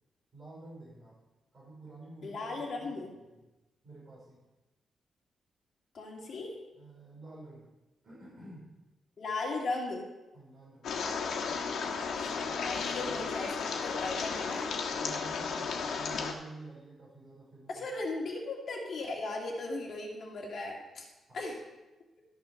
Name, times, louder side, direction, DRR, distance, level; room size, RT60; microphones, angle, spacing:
voice 1, 0.3-1.2 1.5-3.4 3.8-4.4 6.8-7.7 8.0-8.7 10.3-11.0 12.9-13.2 15.0-18.1 21.3-21.5, right 2 dB, 40° right, -5 dB, 4.9 m, -50 dB
voice 2, 2.2-3.1 5.9-6.6 9.2-10.1 12.0-14.7 17.7-21.1 21.3-21.6, left 2 dB, 50° left, 0 dB, 2.4 m, -37 dB
sound 1, 10.8-16.3, left 5 dB, 90° left, 1.4 m, -34 dB
13.0 x 6.5 x 6.0 m, 1.1 s
wide cardioid pair, 160°, 0 cm